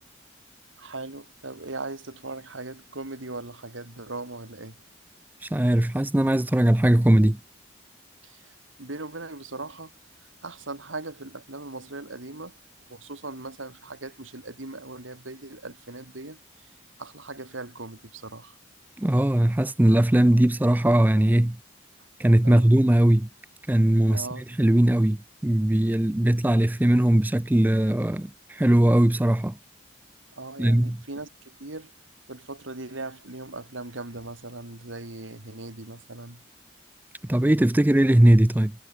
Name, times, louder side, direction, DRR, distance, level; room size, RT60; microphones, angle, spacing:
voice 1, 0.8-4.8 8.2-9.9 10.4-12.6 12.9-16.7 17.0-18.6 22.4-22.7 24.1-24.4 30.4-31.9 32.3-36.4, right 2 dB, 90° right, 2.6 m, -39 dB
voice 2, 5.4-7.4 19.0-21.6 22.2-23.3 23.7-24.3 24.6-25.2 25.4-29.6 30.6-31.0 37.3-38.7, right 1 dB, 10° right, 0.4 m, -20 dB
head